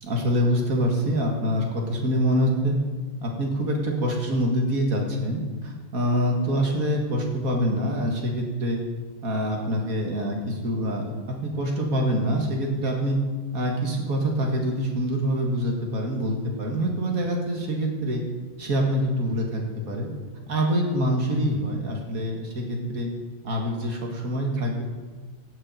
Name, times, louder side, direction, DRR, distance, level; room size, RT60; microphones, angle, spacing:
voice 1, 0.0-2.8 3.2-8.8 9.2-10.4 10.6-13.2 13.5-18.2 18.6-20.1 20.5-23.1 23.4-24.8, equal, 90° right, 0 dB, 2.4 m, -25 dB
16.0 x 6.7 x 5.7 m, 1.3 s
omnidirectional pair, 1.4 m